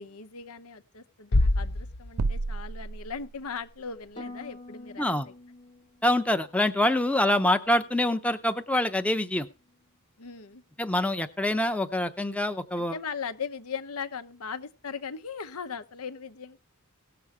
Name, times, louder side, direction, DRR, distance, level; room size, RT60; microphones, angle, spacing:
voice 1, 0.0-5.3 10.2-10.6 12.8-16.6, left 6 dB, 80° left, 0.9 m, -38 dB
Bass drum, 1.3-3.0, left 2 dB, 50° left, 0.6 m, -27 dB
sound 1, 2.2-3.8, right 3 dB, 70° right, 0.5 m, -32 dB
Harp, 4.2-8.3 8.6-9.1 9.6-9.9, left 2 dB, 25° left, 1.2 m, -49 dB
voice 2, 6.0-9.5 10.8-13.0, left 1 dB, 5° left, 0.6 m, -25 dB
17.5 x 6.9 x 4.9 m
head